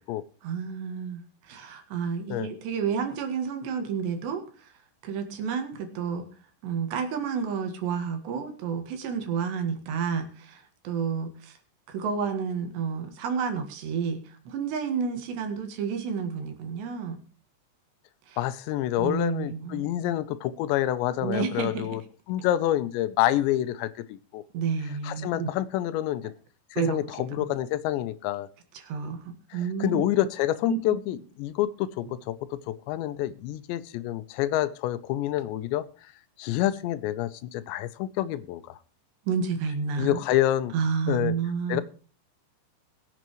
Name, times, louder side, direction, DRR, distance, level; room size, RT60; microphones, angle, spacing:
voice 1, 0.4-4.7 5.0-6.3 6.6-11.6 11.9-17.2 18.3-18.4 19.0-19.9 21.2-22.0 22.4-22.5 24.5-25.5 26.8-27.0 27.4-27.5 28.7-30.1 30.7-30.8 39.3-40.2 40.7-41.8, right 6 dB, 75° right, 6 dB, 3.8 m, -30 dB
voice 2, 18.4-22.0 22.3-24.4 25.0-26.3 26.7-28.5 29.5-35.9 36.4-38.8 40.0-40.7 41.1-41.3 41.7-41.8, left 13 dB, 80° left, 14 dB, 3.0 m, -28 dB
21.5 x 8.1 x 3.1 m, 0.40 s
omnidirectional pair, 5.1 m